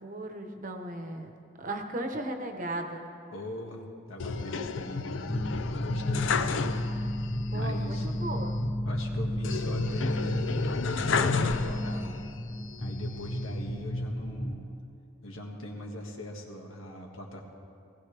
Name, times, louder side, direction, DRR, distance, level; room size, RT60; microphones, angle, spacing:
voice 1, 0.0-1.3 1.6-3.1 4.6-4.7 6.1-6.2 7.5-8.6, right 1 dB, 40° right, 5 dB, 1.0 m, -36 dB
voice 2, 3.3-6.8 7.5-8.3 8.8-12.3 12.8-14.6 15.2-17.4, left 1 dB, 80° left, 1 dB, 1.8 m, -41 dB
sound 1, 4.2-7.2 7.5-7.6 9.4-12.2 12.7-13.5, left 5 dB, 65° left, 0.5 m, -31 dB
sound 2, 5.3-14.6, left 1 dB, 20° left, 0.7 m, -32 dB
19.5 x 15.5 x 3.4 m, 2.5 s
head